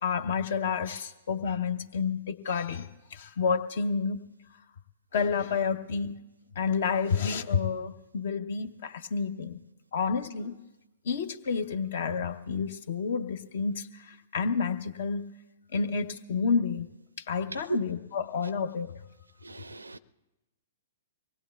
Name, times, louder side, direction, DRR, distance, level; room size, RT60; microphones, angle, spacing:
voice 1, 0.0-4.2 5.1-6.2 6.6-9.6 9.9-10.6 11.0-15.3 15.7-16.9 17.2-18.9, left 5 dB, 50° left, 0.7 m, -30 dB
voice 2, 19.4-20.0, right 2 dB, 75° right, 0.4 m, -45 dB
24.0 x 19.0 x 2.3 m
figure-of-eight pair, 110°, 0 cm